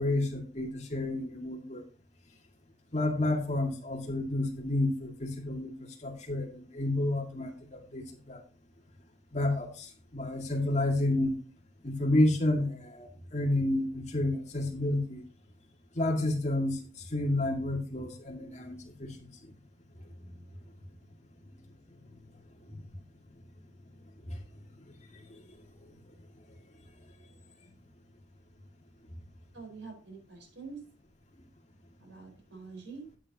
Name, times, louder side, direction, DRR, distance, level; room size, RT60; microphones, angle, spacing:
voice 1, 0.0-1.8 2.9-8.4 9.3-11.3 11.8-15.2 16.0-19.5 20.2-20.3 22.7-22.8 24.2-24.4 25.1-25.4, left 1 dB, 35° left, 2 dB, 2.2 m, -30 dB
voice 2, 29.5-30.8 32.0-33.0, right 4 dB, 80° right, 2 dB, 4.6 m, -46 dB
12.0 x 9.1 x 2.9 m, 0.36 s
head